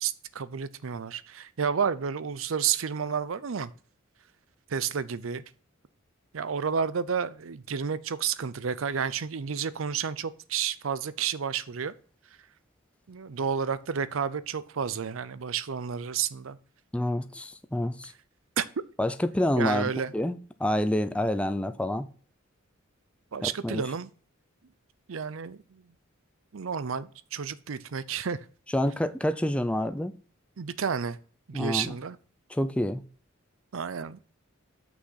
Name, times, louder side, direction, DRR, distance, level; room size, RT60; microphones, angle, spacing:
voice 1, 0.0-3.7 4.7-5.4 6.3-11.9 13.1-16.6 18.6-18.7 19.6-20.1 23.3-24.1 25.1-25.8 26.5-28.5 30.6-31.2 31.5-32.2 33.7-34.2, right 6 dB, 75° right, 0.6 m, -31 dB
voice 2, 16.9-18.1 19.0-22.1 23.4-23.8 28.7-30.1 31.5-31.9 32.5-33.0, left 1 dB, 5° left, 0.4 m, -28 dB
6.2 x 6.2 x 5.6 m
head